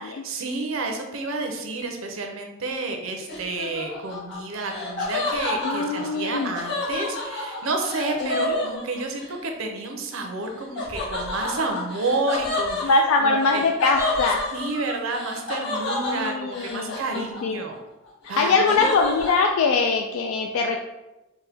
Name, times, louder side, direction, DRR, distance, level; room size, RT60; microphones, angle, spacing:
voice 1, 0.2-12.9 13.2-13.6 14.5-17.8 18.3-18.9, right 3 dB, 75° right, 4 dB, 0.6 m, -30 dB
Laughter, 3.3-9.3 10.8-17.7 18.0-19.5, left 2 dB, 55° left, 1.3 m, -30 dB
voice 2, 5.6-6.5 8.2-8.6 12.8-14.4 16.1-17.6 18.4-20.8, left 4 dB, 80° left, 2 dB, 0.3 m, -22 dB
4.3 x 2.2 x 3.4 m, 1.0 s
head